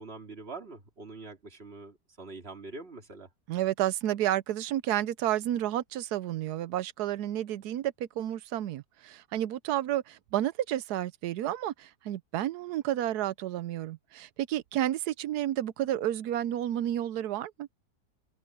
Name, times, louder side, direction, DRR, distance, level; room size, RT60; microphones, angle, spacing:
voice 1, 0.0-3.3, right 3 dB, 35° right, 3.0 m, -44 dB
voice 2, 3.5-17.7, right 12 dB, 75° right, 1.1 m, -31 dB
omnidirectional pair, 1.8 m